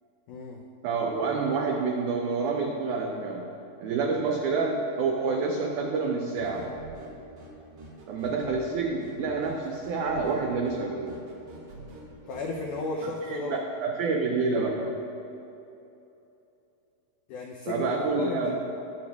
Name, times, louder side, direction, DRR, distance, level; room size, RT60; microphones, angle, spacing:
voice 1, 0.3-0.6 12.3-13.6 17.3-18.6, left 3 dB, 90° left, 0 dB, 1.7 m, -34 dB
voice 2, 0.8-3.5 3.8-6.7 8.1-11.2 13.3-15.0 17.7-18.6, right 4 dB, 90° right, 1 dB, 1.7 m, -28 dB
sound 1, 6.3-12.9, right 2 dB, 60° right, 2.7 m, -47 dB
18.5 x 6.6 x 2.3 m, 2.9 s
omnidirectional pair, 4.3 m